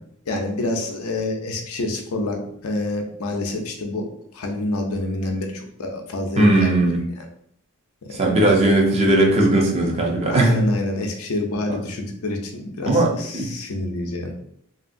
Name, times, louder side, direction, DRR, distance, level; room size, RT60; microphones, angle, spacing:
voice 1, 0.3-4.0 4.3-7.3 8.0-8.4 10.3-14.3, left 2 dB, 70° left, 3 dB, 0.5 m, -27 dB
voice 2, 6.4-7.0 8.1-10.6 11.7-11.8 12.8-13.5, right 1 dB, 30° right, -1 dB, 0.6 m, -18 dB
2.9 x 2.7 x 2.6 m, 0.69 s
head